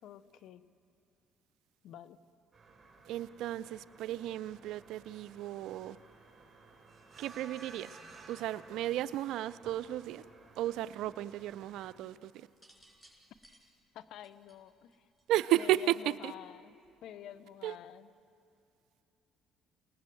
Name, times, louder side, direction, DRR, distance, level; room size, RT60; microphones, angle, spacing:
voice 1, 0.0-0.6 1.8-2.2 13.9-15.1 15.5-18.1, left 10 dB, 70° left, 0.8 m, -49 dB
sound 1, 2.5-12.0, right 3 dB, 40° right, 6.8 m, -56 dB
voice 2, 3.1-6.0 7.2-8.0 8.3-10.2 10.6-12.5 15.3-16.3 17.6-17.8, right 14 dB, 75° right, 0.5 m, -34 dB
sound 2, 12.5-15.6 16.7-17.1, right 1 dB, ahead, 6.9 m, -62 dB
28.5 x 19.5 x 7.7 m
supercardioid pair, 65°, 0 cm